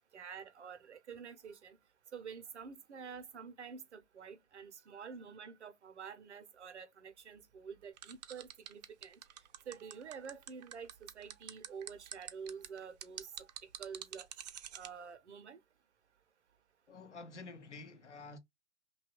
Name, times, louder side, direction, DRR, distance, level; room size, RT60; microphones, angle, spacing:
voice 1, 0.1-1.8 2.1-9.2 9.7-14.3 14.7-15.6, right 6 dB, 80° right, 0.6 m, -48 dB
sound 1, 8.0-14.9, right 11 dB, 40° right, 0.4 m, -47 dB
voice 2, 16.9-18.4, left 3 dB, 85° left, 0.7 m, -49 dB
2.7 x 2.2 x 2.9 m
figure-of-eight pair, 110°, 34 cm